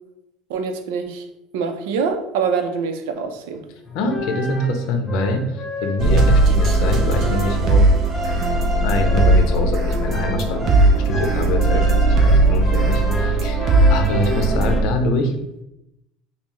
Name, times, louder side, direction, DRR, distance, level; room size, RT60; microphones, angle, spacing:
voice 1, 0.5-1.3 1.5-3.6 11.7-11.9, right 5 dB, 90° right, 7 dB, 0.5 m, -25 dB
sound 1, 3.8-14.8, left 1 dB, 15° left, 0.6 m, -29 dB
voice 2, 3.9-7.9 8.8-10.6 11.0-15.3, left 2 dB, 60° left, 5 dB, 0.6 m, -24 dB
sound 2, 6.0-14.8, right 2 dB, 35° right, 0.5 m, -17 dB
5.4 x 2.0 x 3.0 m, 0.86 s
cardioid pair, 165°, 0 cm